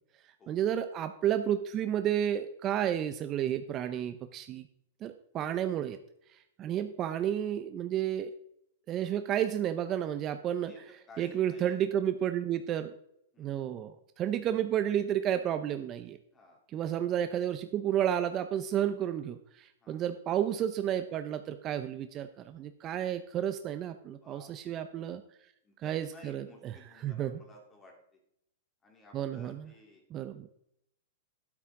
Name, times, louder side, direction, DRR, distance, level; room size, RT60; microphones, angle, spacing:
voice 1, 0.5-4.7 5.0-6.0 6.3-8.3 8.9-12.9 13.4-16.2 16.7-25.2 25.8-27.4 29.1-29.7 30.1-30.5, right 10 dB, 30° right, 10 dB, 0.6 m, -32 dB
voice 2, 10.7-11.8 13.3-13.6 16.3-16.6 19.8-20.0 24.2-25.0 25.6-28.2 28.8-30.0, left 1 dB, 15° left, 1 dB, 3.3 m, -55 dB
12.0 x 9.5 x 3.8 m, 0.75 s
hypercardioid pair, 145°, 0 cm